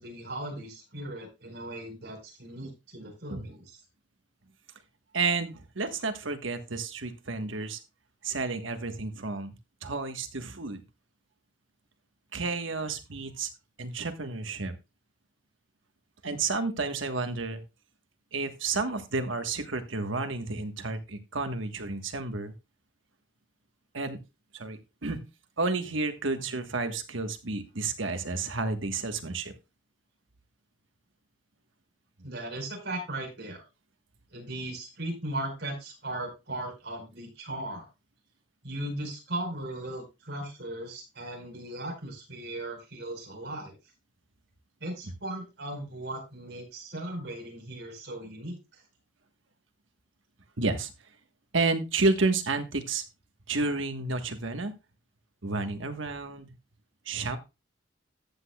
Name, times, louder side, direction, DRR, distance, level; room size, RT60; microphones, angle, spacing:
voice 1, 0.0-3.7 32.2-33.6 34.3-37.9 38.6-43.7 44.8-48.8, right 1 dB, 60° right, 1 dB, 4.7 m, -37 dB
voice 2, 5.1-7.8 8.2-9.5 9.8-10.8 12.3-13.5 13.8-14.8 16.2-17.6 18.3-22.5 23.9-24.2 24.5-25.3 25.6-29.5 50.6-50.9 51.5-53.0 53.5-54.7 55.4-56.5 57.0-57.4, right 3 dB, 85° right, 7 dB, 1.4 m, -31 dB
14.0 x 8.4 x 2.3 m, 0.25 s
head